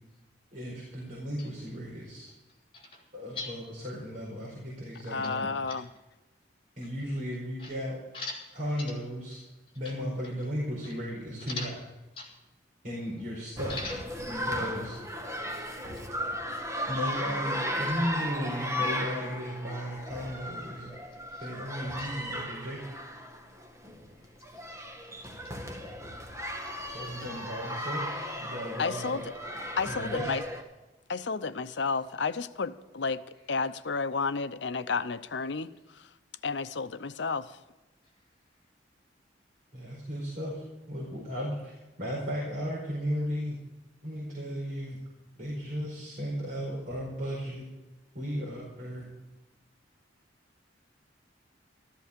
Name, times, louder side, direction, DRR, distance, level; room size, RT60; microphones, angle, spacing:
voice 1, 0.5-2.3 3.1-5.5 6.8-8.0 8.5-9.4 9.7-11.7 12.8-13.7 14.3-15.0 16.9-20.9 21.4-22.8 26.8-28.1 28.4-29.2 29.9-30.3 39.7-41.7 42.0-43.6 44.0-45.0 45.4-47.6 48.1-49.1, equal, 45° right, -5 dB, 4.9 m, -35 dB
voice 2, 5.1-5.9 28.8-29.2 29.8-30.4 31.1-33.2 33.5-35.7 36.4-37.5, left 4 dB, 70° left, 13 dB, 0.7 m, -31 dB
voice 3, 8.1-8.5 8.8-9.0 9.8-9.9 11.4-11.7 12.2-12.3 13.7-14.0 15.5-15.8 16.9-17.0 21.3-21.5 22.0-22.1 23.9-25.6 28.0-28.3, left 3 dB, 30° left, -1 dB, 5.0 m, -42 dB
sound 1, 13.6-30.6, equal, 15° right, 1.8 m, -36 dB
14.0 x 14.0 x 5.2 m, 1.1 s
head